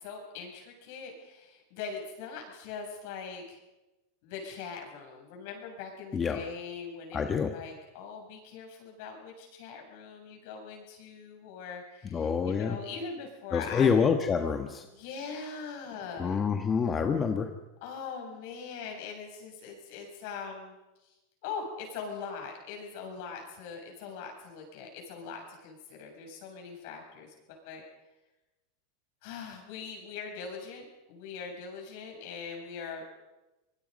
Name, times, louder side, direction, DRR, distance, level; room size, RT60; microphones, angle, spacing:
voice 1, 0.0-3.6 4.2-13.9 15.0-16.4 17.8-20.8 21.0-21.1 21.4-27.8 29.2-33.0, left 5 dB, 60° left, 2 dB, 7.7 m, -41 dB
voice 2, 7.1-7.5 12.1-12.8 13.5-14.9 16.2-17.5, left 6 dB, 20° left, 5 dB, 1.4 m, -27 dB
25.5 x 21.0 x 5.4 m, 1.0 s
supercardioid pair, 135°, 0 cm